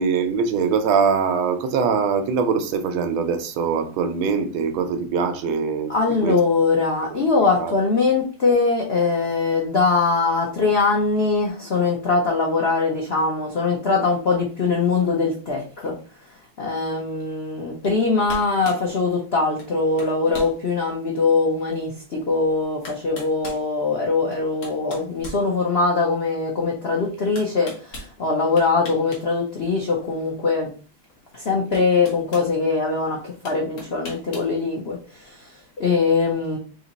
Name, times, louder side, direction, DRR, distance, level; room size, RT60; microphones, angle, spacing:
voice 1, 0.0-6.4 7.1-7.2 7.6-7.7, right 5 dB, 80° right, 1.5 m, -22 dB
voice 2, 5.9-16.0 16.6-30.7 31.3-36.6, left 4 dB, 70° left, 0.6 m, -22 dB
sound 1, 17.8-18.0 18.3-18.9 19.6-19.7 20.0-20.6 21.1-21.2 22.3-22.4 22.8-23.6 24.3-26.0 27.3-28.1 28.6-29.2 29.5-29.7 31.1-31.2 31.7-32.5 33.4-34.5, left 2 dB, 50° left, 1.5 m, -38 dB
3.9 x 2.9 x 4.0 m
omnidirectional pair, 2.2 m